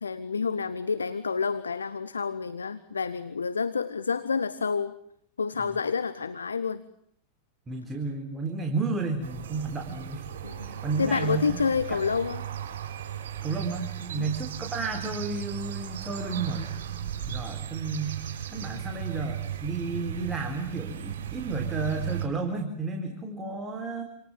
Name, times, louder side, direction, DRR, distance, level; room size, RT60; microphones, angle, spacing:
voice 1, 0.0-4.9 5.4-6.8 10.4-12.4 14.2-14.3, left 5 dB, 75° left, 13 dB, 1.1 m, -29 dB
voice 2, 7.7-10.2 10.6-11.6 11.9-12.0 13.4-24.0, right 4 dB, 20° right, 4 dB, 3.8 m, -32 dB
sound 1, 9.2-22.3, right 10 dB, 60° right, 6.3 m, -36 dB
28.0 x 28.0 x 7.4 m, 0.68 s
figure-of-eight pair, 90°, 0 cm